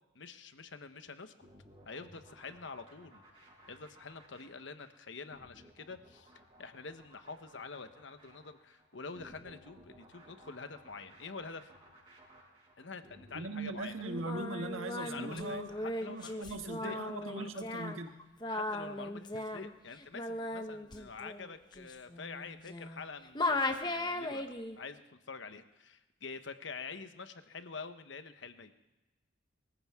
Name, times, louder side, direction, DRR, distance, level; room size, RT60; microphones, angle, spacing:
voice 1, 0.1-1.5 1.8-3.2 3.6-6.3 6.6-11.7 12.8-13.9 15.0-17.6 18.5-28.7, left 4 dB, 65° left, 10 dB, 1.0 m, -47 dB
sound 1, 1.4-16.8, right 1 dB, 25° right, 5.2 m, -59 dB
voice 2, 13.3-15.7 16.1-18.1, right 2 dB, 90° right, 6 dB, 1.4 m, -40 dB
Singing, 14.0-23.0 23.3-24.8, left 2 dB, 20° left, 1.0 m, -37 dB
23.5 x 15.0 x 3.6 m, 1.1 s
head